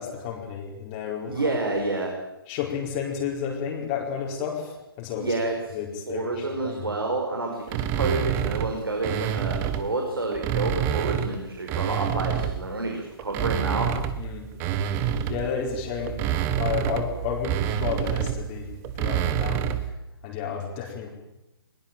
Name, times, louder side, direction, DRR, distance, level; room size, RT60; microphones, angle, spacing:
voice 1, 0.0-1.8 2.5-5.3 5.7-6.9 14.2-14.5 15.3-19.9 20.2-21.1, left 7 dB, 25° left, 0 dB, 4.5 m, -32 dB
voice 2, 1.3-2.1 5.2-5.5 6.1-13.9, right 2 dB, 65° right, 2 dB, 5.5 m, -29 dB
sound 1, 7.7-9.9 10.3-12.7 13.2-19.9, right 9 dB, 20° right, 1.4 m, -28 dB
22.0 x 21.5 x 9.1 m, 0.95 s
figure-of-eight pair, 135°, 13 cm